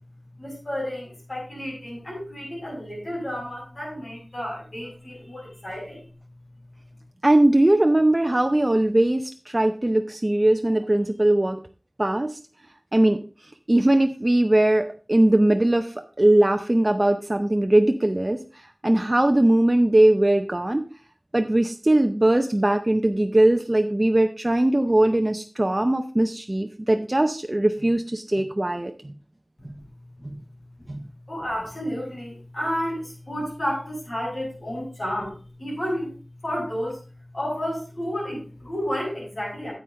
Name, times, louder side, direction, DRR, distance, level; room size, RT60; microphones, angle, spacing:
voice 1, 0.3-6.0 29.7-29.8 30.2-30.4 30.8-31.0 31.3-36.1 36.4-37.0 37.3-39.7, equal, 55° left, -2 dB, 6.5 m, -31 dB
voice 2, 7.2-11.6 12.0-12.4 12.9-13.2 13.7-20.8 21.3-29.1 29.6-29.7 30.2-30.4 30.9-31.1, right 1 dB, 35° right, 5 dB, 0.6 m, -20 dB
9.9 x 7.9 x 3.7 m, 0.35 s
wide cardioid pair, 55°, 0 cm